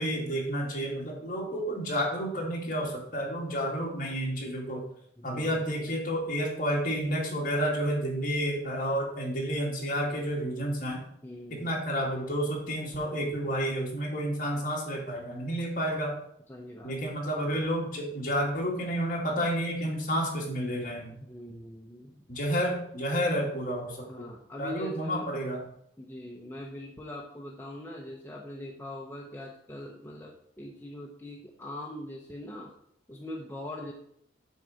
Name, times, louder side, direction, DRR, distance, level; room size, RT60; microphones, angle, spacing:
voice 1, 0.0-4.8 5.2-11.0 11.6-16.1 16.8-21.1 22.3-24.3 24.6-25.6, equal, 45° left, -2 dB, 2.2 m, -30 dB
voice 2, 5.2-5.6 11.2-11.8 16.5-17.2 21.2-22.2 24.1-25.3 26.0-32.7 33.1-33.9, left 1 dB, 10° left, -2 dB, 0.8 m, -42 dB
8.1 x 4.1 x 6.4 m, 0.69 s
head